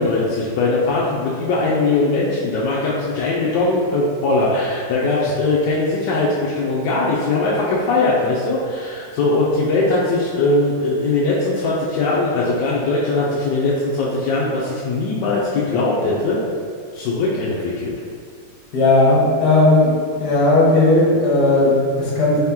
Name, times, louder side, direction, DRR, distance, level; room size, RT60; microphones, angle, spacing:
voice 1, 0.0-16.4 16.9-17.9, left 2 dB, 75° left, -6 dB, 1.0 m, -20 dB
voice 2, 18.7-19.9 20.2-22.4, left 2 dB, 55° left, -5 dB, 1.3 m, -15 dB
4.1 x 2.8 x 3.6 m, 2.1 s
omnidirectional pair, 2.4 m